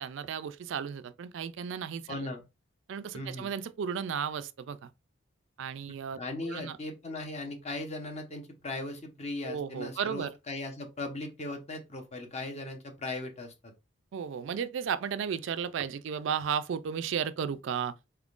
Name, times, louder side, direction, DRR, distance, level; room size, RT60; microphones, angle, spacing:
voice 1, 0.0-2.3 2.9-4.9 5.6-6.8 9.4-10.3 14.1-17.9, right 7 dB, 65° right, 0.3 m, -34 dB
voice 2, 2.1-2.4 3.1-3.5 6.2-13.7, left 2 dB, 35° left, 0.9 m, -38 dB
4.3 x 3.6 x 2.4 m
head